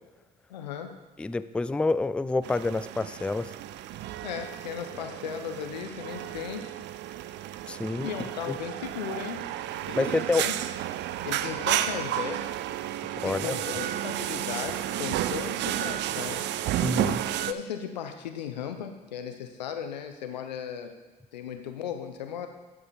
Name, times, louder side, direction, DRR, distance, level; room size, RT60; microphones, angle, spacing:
voice 1, 0.5-0.9 4.2-6.7 8.0-9.5 9.8-10.5 11.2-12.6 13.2-16.5 17.0-20.9 21.3-22.5, left 8 dB, 85° left, 7 dB, 0.7 m, -36 dB
voice 2, 1.2-3.5 7.7-8.1 8.5-8.6 10.0-10.4 13.2-13.5 16.8-17.2, left 3 dB, 5° left, 14 dB, 0.3 m, -28 dB
sound 1, 2.4-17.5, right 12 dB, 55° right, 0.5 m, -32 dB
12.0 x 5.1 x 4.1 m, 1.3 s
hypercardioid pair, 55°, 21 cm